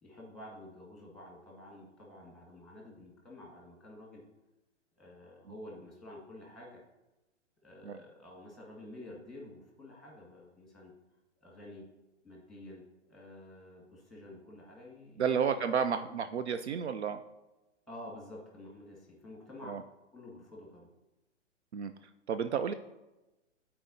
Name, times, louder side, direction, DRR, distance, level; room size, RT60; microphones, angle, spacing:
voice 1, 0.0-4.2 5.0-6.8 7.6-10.9 11.4-11.9 12.2-12.8 13.1-16.4 17.9-19.8 20.1-20.9, left 1 dB, ahead, -3 dB, 1.8 m, -50 dB
voice 2, 15.2-17.2 19.7-19.8 21.7-21.9 22.3-22.7, right 7 dB, 65° right, 10 dB, 0.5 m, -31 dB
12.0 x 4.4 x 2.7 m, 1.0 s
figure-of-eight pair, 120°, 37 cm